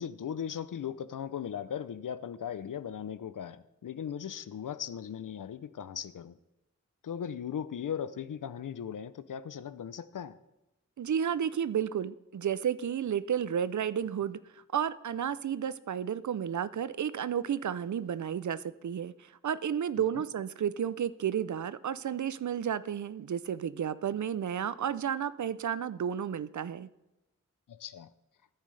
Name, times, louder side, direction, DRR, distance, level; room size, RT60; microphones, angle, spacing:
voice 1, 0.0-6.4 7.0-10.4 20.1-20.2 27.7-28.1, left 8 dB, 85° left, 0.5 m, -38 dB
voice 2, 11.0-14.4 14.7-26.9, right 8 dB, 70° right, 0.5 m, -32 dB
14.0 x 9.0 x 3.3 m
wide cardioid pair, 85°, 31 cm